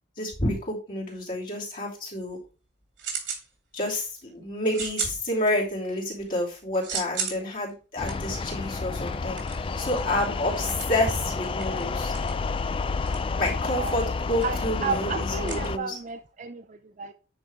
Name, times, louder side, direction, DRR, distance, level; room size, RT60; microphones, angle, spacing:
voice 1, 0.2-2.4 3.7-12.1 13.3-16.0, left 1 dB, 50° left, 3.0 m, -29 dB
sound 1, 2.3-3.5 3.8-4.2 4.7-5.9 6.2-16.3, right 6 dB, 80° right, 3.0 m, -37 dB
sound 2, 8.0-15.8, left 4 dB, 30° left, 0.3 m, -30 dB
voice 2, 14.4-17.1, right 5 dB, 40° right, 0.5 m, -33 dB
9.7 x 4.9 x 3.5 m
head